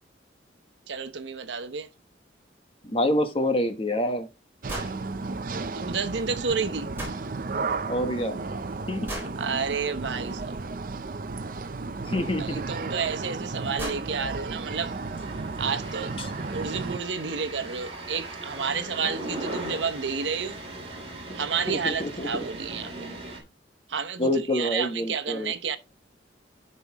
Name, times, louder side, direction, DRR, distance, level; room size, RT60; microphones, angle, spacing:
voice 1, 0.9-1.9 5.7-6.9 9.4-10.5 12.4-14.9 15.6-16.1 16.5-20.6 21.3-23.1 23.9-25.8, right 5 dB, 85° right, 0.9 m, -30 dB
voice 2, 2.8-4.3 7.9-8.4 8.9-9.1 12.1-12.6 16.2-16.3 21.7-22.4 24.2-25.5, left 1 dB, 30° left, 1.1 m, -27 dB
sound 1, 4.6-17.0, right 3 dB, 50° right, 0.6 m, -34 dB
sound 2, 4.7-5.0 7.0-7.2 9.1-9.4 11.6-11.7 13.0-13.1 13.5-13.6 13.8-14.1, right 1 dB, 15° right, 4.0 m, -35 dB
sound 3, 14.8-23.4, right 2 dB, 35° right, 3.1 m, -38 dB
12.0 x 5.5 x 3.0 m
head